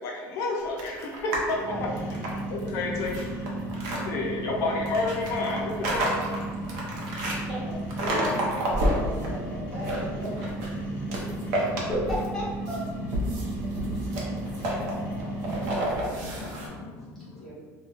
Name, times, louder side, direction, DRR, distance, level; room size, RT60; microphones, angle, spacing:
voice 1, 0.0-1.9 2.5-3.1 3.4-3.5 4.0-6.1 10.3-10.4 11.3-11.9 13.0-17.5, left 3 dB, 45° left, -1 dB, 0.4 m, -33 dB
sound 1, 0.8-1.5 1.9-4.0 4.9-7.4 7.9-9.3 9.6-10.8 11.1-12.4 12.7-16.7, right 1 dB, 65° right, 0.7 m, -30 dB
voice 2, 1.4-2.0 8.0-10.4, right 1 dB, 45° right, -7 dB, 1.1 m, -37 dB
sound 2, 1.6-15.8, right 1 dB, 30° left, 0.7 m, -35 dB
voice 3, 11.5-12.8 17.1-17.5, equal, ahead, -9 dB, 1.0 m, -33 dB
4.3 x 2.2 x 2.4 m, 1.5 s
cardioid pair, 180°, 6 cm